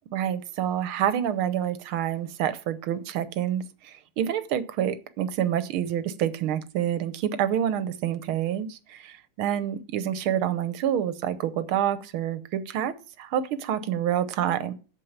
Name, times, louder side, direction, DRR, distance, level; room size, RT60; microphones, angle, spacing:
voice 1, 0.1-14.7, right 10 dB, 80° right, 1.7 m, -28 dB
8.3 x 7.5 x 7.3 m
omnidirectional pair, 2.3 m